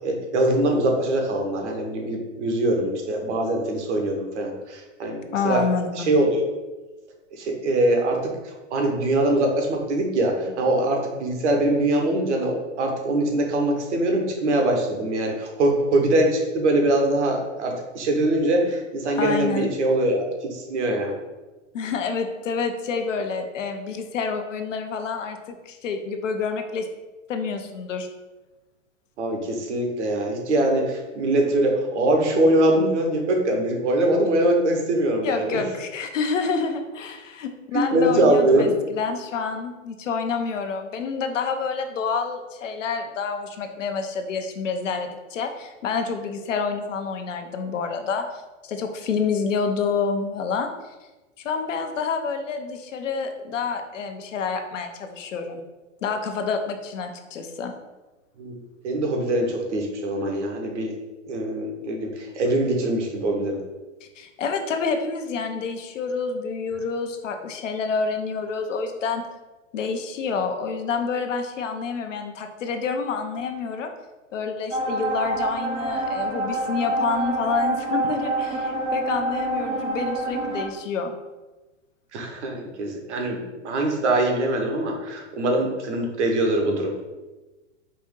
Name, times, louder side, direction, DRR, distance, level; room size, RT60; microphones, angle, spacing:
voice 1, 0.0-5.2 5.4-6.5 7.3-8.2 8.4-20.2 20.5-21.1 29.2-35.6 37.7-38.7 58.4-58.5 58.8-60.9 61.3-63.6 82.1-86.9, right 1 dB, 65° right, 2 dB, 1.1 m, -23 dB
voice 2, 5.3-6.1 19.2-19.7 21.7-26.9 27.3-28.1 35.2-50.9 51.4-55.6 56.0-57.7 64.2-69.2 69.7-73.9 74.3-81.2, left 5 dB, 75° left, 6 dB, 0.7 m, -28 dB
sound 1, 74.7-80.7, right 2 dB, 15° right, 0.4 m, -27 dB
4.2 x 2.5 x 3.7 m, 1.1 s
hypercardioid pair, 115°, 38 cm